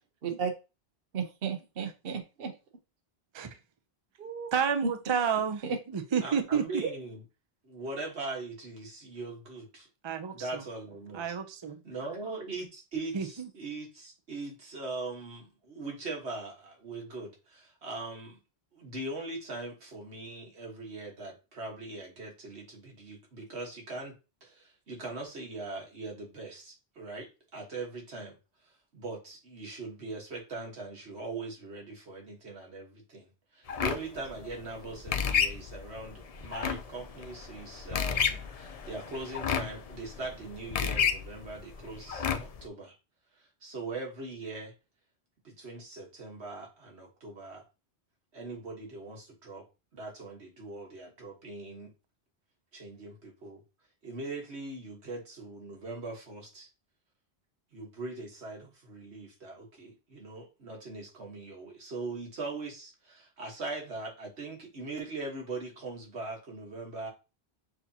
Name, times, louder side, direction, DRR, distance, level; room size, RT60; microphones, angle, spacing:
voice 1, 1.1-2.5 4.2-4.5 4.8-4.9 5.6-5.8 6.8-6.9, right 5 dB, 60° right, 1.0 m, -33 dB
voice 2, 4.5-6.8 10.0-10.6 11.1-11.8 13.1-13.5, right 7 dB, 40° right, 0.4 m, -30 dB
voice 3, 6.2-7.2 7.6-9.9 10.3-11.3 11.8-18.4 18.7-24.1 24.4-28.4 28.9-42.9 43.6-44.7 45.4-47.6 48.3-49.6 49.9-51.9 52.7-53.6 54.0-56.7 57.7-67.1, right 3 dB, 80° right, 1.7 m, -41 dB
sound 1, 33.7-42.7, left 7 dB, 50° left, 0.5 m, -32 dB
6.4 x 2.8 x 2.8 m
omnidirectional pair, 1.1 m